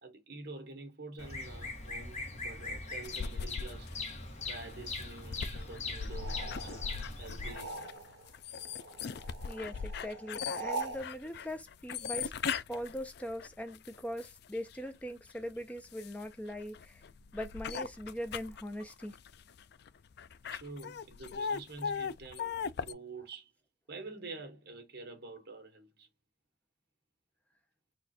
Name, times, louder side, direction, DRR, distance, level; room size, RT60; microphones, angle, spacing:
voice 1, 0.0-3.9 4.4-6.9 7.2-7.8 20.5-23.5 23.9-26.1, right 3 dB, 60° right, 1.6 m, -47 dB
Bird vocalization bird call bird song, 1.2-7.6, left 3 dB, 40° left, 1.2 m, -41 dB
sound 1, 3.0-14.8 15.3-22.9, left 6 dB, 60° left, 0.4 m, -39 dB
sound 2, 6.1-8.3 8.6-11.1, right 3 dB, 85° right, 1.0 m, -43 dB
voice 2, 9.5-12.3 12.7-17.0 17.3-19.1, equal, 10° left, 0.8 m, -41 dB
4.2 x 2.5 x 4.3 m
head